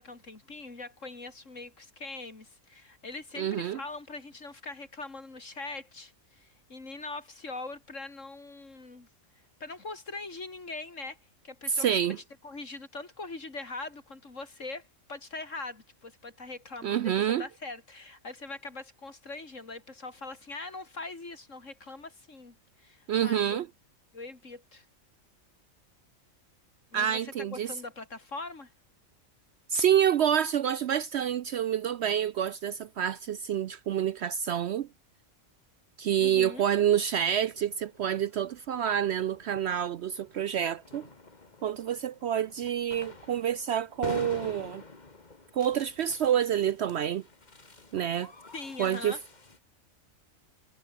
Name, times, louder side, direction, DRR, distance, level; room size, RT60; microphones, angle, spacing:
voice 1, 0.0-9.1 9.6-11.2 11.4-11.9 12.4-23.6 24.1-24.9 26.9-28.7 36.2-36.6 48.5-49.2, left 3 dB, 65° left, 4.0 m, -42 dB
voice 2, 3.4-3.8 11.7-12.2 16.8-17.4 23.1-23.7 26.9-27.7 29.7-34.9 36.0-41.1 41.6-44.8 45.5-47.2 47.9-48.3 48.8-49.2, right 9 dB, 65° right, 0.7 m, -28 dB
sound 1, 36.2-49.6, left 3 dB, 30° left, 2.0 m, -48 dB
omnidirectional pair, 1.4 m